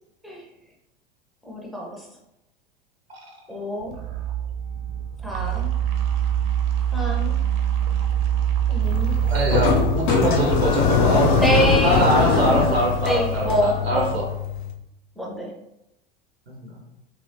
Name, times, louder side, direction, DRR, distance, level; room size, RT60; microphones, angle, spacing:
voice 1, 1.4-2.1 3.5-3.9 5.2-5.7 6.9-7.4 8.7-9.2 11.4-12.7 13.0-14.2 15.2-15.5, equal, ahead, -2 dB, 0.5 m, -26 dB
sound 1, 3.8-12.4, right 10 dB, 50° right, 0.5 m, -25 dB
sound 2, 8.8-14.7, left 4 dB, 55° left, 0.5 m, -22 dB
voice 2, 9.3-11.4 11.8-14.2 16.5-16.8, equal, 90° right, 0 dB, 0.7 m, -23 dB
2.9 x 2.4 x 2.6 m, 0.86 s
figure-of-eight pair, 80°, 30 cm